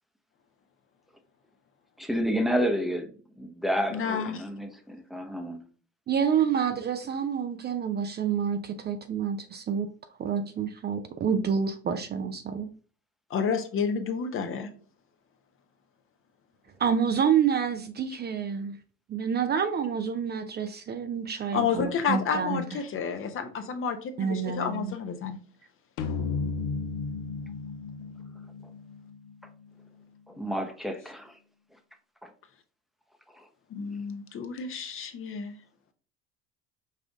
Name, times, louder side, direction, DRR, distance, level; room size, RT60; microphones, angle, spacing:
voice 1, 2.0-5.6 30.3-31.4 32.2-32.3 33.3-33.5, equal, ahead, 0.7 m, -30 dB
voice 2, 3.9-4.5 13.3-14.7 21.5-25.4 33.7-35.5, left 6 dB, 40° left, 0.8 m, -30 dB
voice 3, 6.1-9.9 10.2-12.7 16.8-18.8 19.1-22.6 24.2-24.9, right 7 dB, 30° right, 0.5 m, -28 dB
sound 1, 26.0-29.5, left 4 dB, 70° left, 0.7 m, -34 dB
5.4 x 2.5 x 3.5 m
hypercardioid pair, 75°, 32 cm